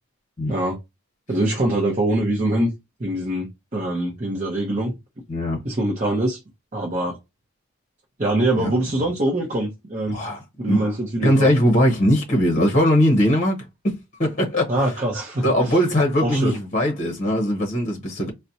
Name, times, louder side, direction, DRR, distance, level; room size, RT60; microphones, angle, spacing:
voice 1, 1.3-2.7 3.0-4.9 5.6-6.4 6.7-7.2 8.2-10.2 10.6-11.5 14.7-15.8 16.2-16.6, right 1 dB, 35° right, 0.7 m, -23 dB
voice 2, 5.3-5.6 8.6-8.7 10.1-10.8 11.2-14.7 15.4-18.3, equal, 35° left, 0.8 m, -20 dB
4.0 x 2.1 x 2.7 m
head